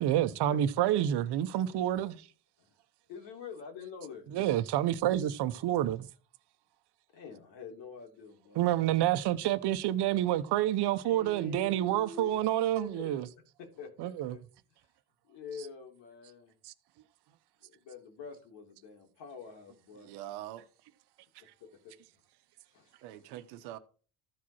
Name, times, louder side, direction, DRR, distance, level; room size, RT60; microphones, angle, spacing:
voice 1, 0.0-2.2 4.3-6.1 8.5-13.2 14.0-14.4 16.6-16.7, right 12 dB, 60° right, 1.0 m, -28 dB
voice 2, 3.1-4.3 7.1-8.7 11.0-13.2 13.6-14.4 15.2-16.5 17.6-20.1 21.4-21.9 22.7-23.0, left 4 dB, 70° left, 3.4 m, -46 dB
voice 3, 20.0-20.7 21.3-21.4 23.0-23.8, right 13 dB, 85° right, 1.1 m, -44 dB
14.0 x 4.7 x 4.3 m
supercardioid pair, 85°, 45 cm